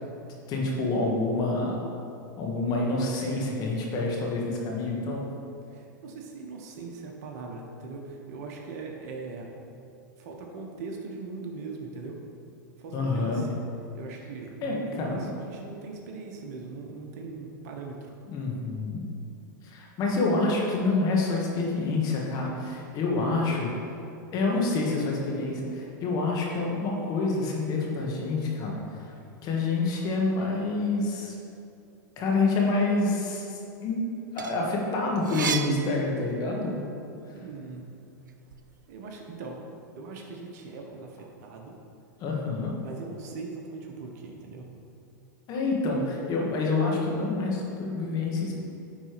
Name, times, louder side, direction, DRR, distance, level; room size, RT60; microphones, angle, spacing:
voice 1, 0.5-1.8 2.4-5.2 12.9-13.4 14.6-15.3 18.3-19.0 19.6-23.7 24.3-29.2 29.4-31.4 32.2-34.0 34.3-36.8 37.3-37.4 42.2-42.7 45.5-48.6, left 3 dB, 40° left, -2 dB, 1.9 m, -27 dB
voice 2, 5.7-9.5 10.2-12.2 12.8-13.6 13.9-18.1 37.3-37.8 38.9-39.6 40.0-41.8 42.8-44.7, right 4 dB, 60° right, 1 dB, 1.2 m, -40 dB
sound 1, 34.1-36.8 37.2-38.6, right 7 dB, 80° right, 0.5 m, -35 dB
9.6 x 4.2 x 4.9 m, 2.7 s
hypercardioid pair, 100°, 10 cm